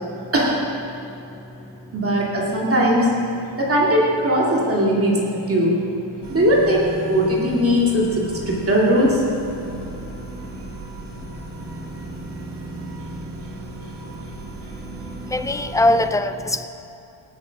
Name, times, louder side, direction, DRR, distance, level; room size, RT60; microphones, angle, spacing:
voice 1, 1.9-3.1 3.6-5.2 5.5-5.8 6.3-9.2, equal, 30° right, -5 dB, 2.6 m, -19 dB
sound 1, 6.2-16.1, right 2 dB, 60° right, 1.7 m, -35 dB
voice 2, 15.2-16.7, left 1 dB, 5° left, 9 dB, 0.4 m, -21 dB
18.5 x 7.3 x 5.9 m, 2.8 s
wide cardioid pair, 125°, 47 cm